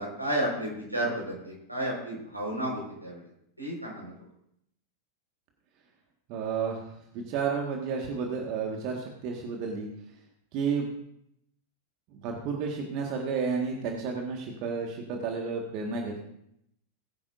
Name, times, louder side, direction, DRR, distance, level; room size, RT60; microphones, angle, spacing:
voice 1, 0.0-3.2 3.6-4.1, right 1 dB, 85° right, -2 dB, 5.1 m, -32 dB
voice 2, 6.3-9.9 10.5-10.9 12.1-16.2, right 5 dB, 40° right, 1 dB, 1.8 m, -31 dB
21.0 x 9.6 x 2.7 m, 0.75 s
figure-of-eight pair, 90°, 0 cm